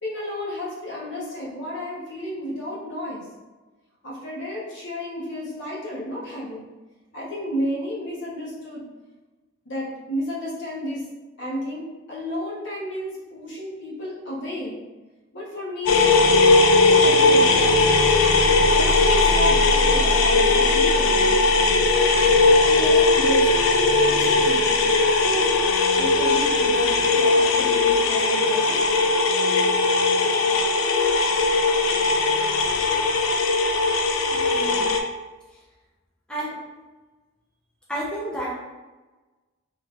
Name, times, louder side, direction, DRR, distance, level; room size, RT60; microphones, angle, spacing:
voice 1, 0.0-3.3 4.0-6.7 7.1-8.8 9.6-11.0 11.4-11.8 12.1-14.8 15.3-16.1 16.7-17.9 18.5-21.2 21.9-23.5 24.1-24.8 25.1-25.5 25.9-28.9, left 1 dB, 60° left, -6 dB, 1.0 m, -32 dB
sound 1, 15.9-35.0, left 3 dB, 80° left, 0.4 m, -19 dB
voice 2, 34.3-34.9 36.3-36.5 37.9-38.5, right 1 dB, 5° left, -7 dB, 0.6 m, -31 dB
3.3 x 2.8 x 2.4 m, 1.2 s
head